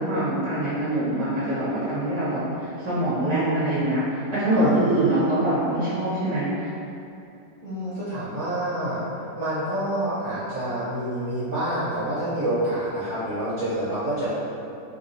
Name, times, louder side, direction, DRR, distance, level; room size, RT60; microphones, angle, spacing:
voice 1, 0.0-6.7, right 1 dB, 25° right, -11 dB, 0.8 m, -24 dB
voice 2, 4.5-5.3 7.6-9.0 9.3-14.3, right 1 dB, 50° right, -14 dB, 1.0 m, -27 dB
3.0 x 2.8 x 2.7 m, 2.7 s
omnidirectional pair, 1.9 m